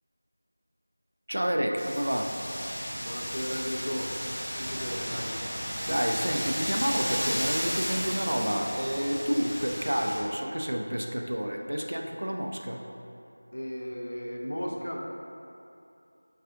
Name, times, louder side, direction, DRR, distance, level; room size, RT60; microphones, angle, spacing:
voice 1, 1.3-2.4 5.8-12.8, equal, 60° right, 2 dB, 0.3 m, -29 dB
Wind, 1.8-10.2, equal, 5° left, 0.7 m, -34 dB
voice 2, 3.0-5.3 13.5-15.0, equal, 60° left, -1 dB, 0.5 m, -35 dB
3.6 x 2.4 x 3.6 m, 2.7 s
figure-of-eight pair, 175°, 0 cm